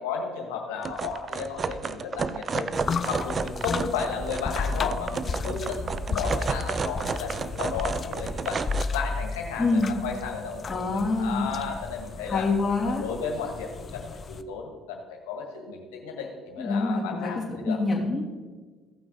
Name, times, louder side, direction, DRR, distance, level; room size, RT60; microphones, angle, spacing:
voice 1, 0.0-2.7 3.1-8.6 8.9-12.5 12.8-17.8, left 5 dB, 75° left, 1 dB, 1.7 m, -34 dB
sound 1, 0.8-8.8, right 5 dB, 40° right, 0.5 m, -32 dB
sound 2, 2.7-14.4, left 4 dB, 40° left, 0.5 m, -34 dB
voice 2, 9.6-9.9 10.7-11.5 12.3-13.0 16.6-18.3, left 3 dB, 20° left, -6 dB, 2.8 m, -26 dB
16.0 x 5.8 x 4.0 m, 1.4 s
hypercardioid pair, 55°, 0 cm